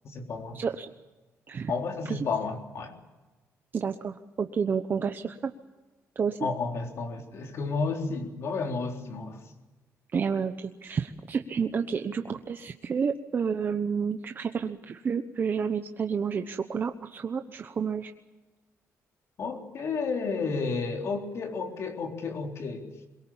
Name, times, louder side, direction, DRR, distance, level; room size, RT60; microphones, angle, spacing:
voice 1, 0.0-0.6 1.7-2.9 6.4-9.5 19.4-22.9, left 4 dB, 55° left, 3 dB, 3.8 m, -32 dB
voice 2, 0.5-0.9 1.5-1.7 2.1-2.2 3.7-5.5 6.2-6.4 10.1-18.1, right 6 dB, 35° right, 6 dB, 1.0 m, -30 dB
23.0 x 22.5 x 7.3 m, 1.2 s
cardioid pair, 150°, 6 cm